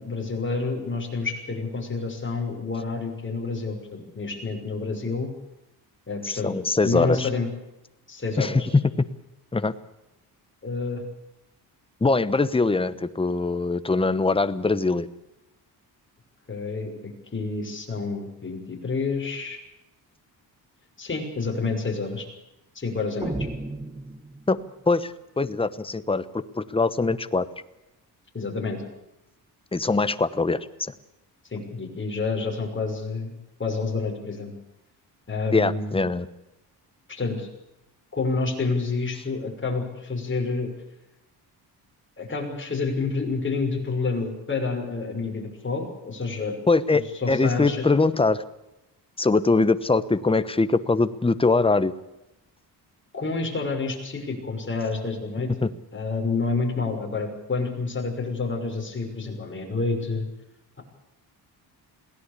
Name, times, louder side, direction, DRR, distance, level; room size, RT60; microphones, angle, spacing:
voice 1, 0.0-5.3 6.1-6.5 6.8-7.5 8.1-8.7 10.6-11.0 16.5-19.6 21.0-22.3 22.7-23.5 28.3-28.8 31.5-33.3 33.6-34.5 35.3-36.0 37.1-37.5 38.1-40.7 42.2-46.6 46.9-47.9 53.1-60.3, left 4 dB, 30° left, 2 dB, 6.3 m, -29 dB
voice 2, 6.2-7.3 8.4-8.6 9.5-9.7 12.0-15.1 24.5-24.6 24.9-27.4 29.7-30.9 35.5-36.3 46.7-47.0 47.3-48.4 49.2-51.9 55.6-55.7, left 3 dB, 15° left, 13 dB, 1.1 m, -22 dB
sound 1, 23.2-24.8, right 2 dB, 15° right, 2.2 m, -33 dB
22.0 x 17.0 x 8.5 m, 0.91 s
cardioid pair, 95°, 40 cm